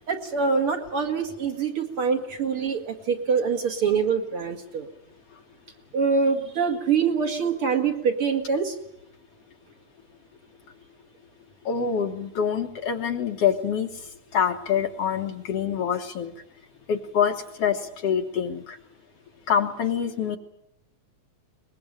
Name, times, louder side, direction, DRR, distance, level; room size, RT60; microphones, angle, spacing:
voice 1, 0.1-4.9 5.9-8.8, right 5 dB, 50° right, 4 dB, 2.7 m, -25 dB
voice 2, 11.7-16.4 16.9-18.8 19.5-20.4, left 7 dB, 60° left, 5 dB, 2.0 m, -26 dB
23.0 x 20.5 x 8.9 m, 0.75 s
omnidirectional pair, 3.4 m